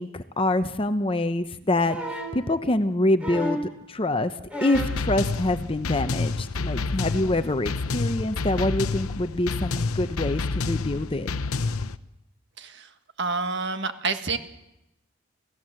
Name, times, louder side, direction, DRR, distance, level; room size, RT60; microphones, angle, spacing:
voice 1, 0.0-2.0 2.3-3.6 3.9-4.3 4.6-11.3, left 1 dB, 25° left, 10 dB, 0.7 m, -25 dB
sound 1, 1.9-2.4 3.2-3.7 4.5-5.0 6.2-6.3, equal, 5° right, 3.6 m, -32 dB
sound 2, 4.7-12.0, left 3 dB, 80° left, 0.8 m, -29 dB
voice 2, 13.2-14.4, right 4 dB, 50° right, 8 dB, 1.6 m, -27 dB
29.0 x 16.5 x 7.7 m, 0.92 s
head